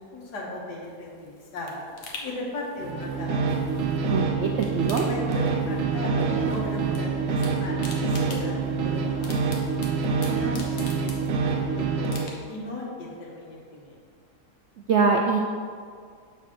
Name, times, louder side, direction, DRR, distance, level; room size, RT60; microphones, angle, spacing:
voice 1, 0.1-1.8 2.2-3.7 4.8-9.6 10.0-10.1 10.4-14.0, left 1 dB, 90° left, -2 dB, 2.0 m, -37 dB
sound 1, 0.9-4.1 4.4-5.9 6.2-7.0 7.3-11.6 12.0-12.7 13.1-13.2, left 4 dB, 60° left, 1.3 m, -44 dB
sound 2, 2.8-12.4, right 5 dB, 60° right, 0.9 m, -26 dB
voice 2, 4.1-5.0 14.9-15.4, right 5 dB, 75° right, 2 dB, 0.6 m, -23 dB
7.0 x 4.1 x 6.0 m, 2.1 s
omnidirectional pair, 1.7 m